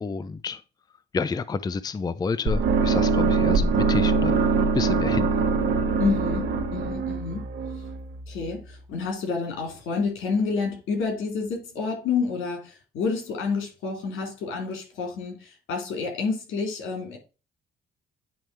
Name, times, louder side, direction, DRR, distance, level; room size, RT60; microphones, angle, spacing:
voice 1, 0.0-0.6 1.1-4.4 4.7-5.3, left 4 dB, 20° left, 0.4 m, -29 dB
sound 1, 2.5-8.5, right 4 dB, 65° right, 1.3 m, -23 dB
voice 2, 6.0-7.5 8.3-17.2, left 4 dB, 85° left, 2.5 m, -29 dB
9.4 x 3.3 x 4.5 m
cardioid pair, 90°, 20 cm